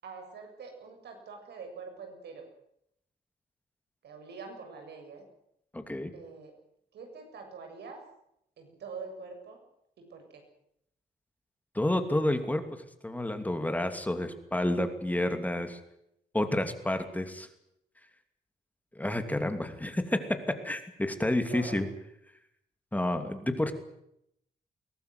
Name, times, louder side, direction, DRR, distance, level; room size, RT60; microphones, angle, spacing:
voice 1, 0.0-2.4 4.0-5.2 6.1-6.5 6.9-8.0 8.6-9.6 10.1-10.4 21.5-21.8, right 4 dB, 90° right, 4 dB, 7.7 m, -44 dB
voice 2, 5.7-6.1 11.7-12.6 13.0-15.8 16.3-17.5 18.9-20.2 20.6-21.9 22.9-23.7, left 1 dB, 10° left, 7 dB, 2.8 m, -29 dB
22.5 x 18.5 x 9.5 m, 0.76 s
wide cardioid pair, 130°, 17 cm